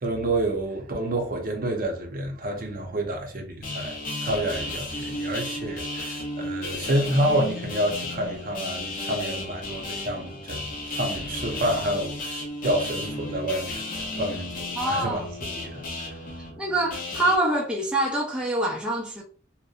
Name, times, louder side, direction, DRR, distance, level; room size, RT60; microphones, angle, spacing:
voice 1, 0.0-10.6 10.9-13.8 14.2-15.2 15.6-16.2, right 1 dB, 50° right, 0.6 m, -28 dB
sound 1, 3.6-17.4, left 2 dB, 45° left, 0.5 m, -34 dB
voice 2, 14.8-15.3 16.6-19.2, right 1 dB, 5° right, 0.4 m, -25 dB
2.7 x 2.1 x 2.3 m
head